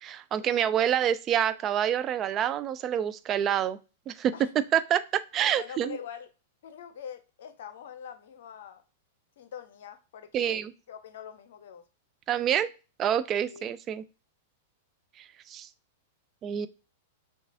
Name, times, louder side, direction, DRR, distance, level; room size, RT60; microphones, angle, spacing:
voice 1, 0.0-3.8 4.1-4.3 4.7-6.0 10.3-10.7 12.3-12.7 13.0-14.0 15.2-15.7 16.4-16.7, right 10 dB, 30° right, 14 dB, 0.3 m, -27 dB
voice 2, 5.4-6.3 6.6-8.8 9.4-10.6 10.9-11.8 12.5-12.6 13.5-13.7, left 8 dB, 65° left, 10 dB, 0.6 m, -44 dB
5.8 x 2.4 x 2.7 m, 0.32 s
figure-of-eight pair, 100°, 0 cm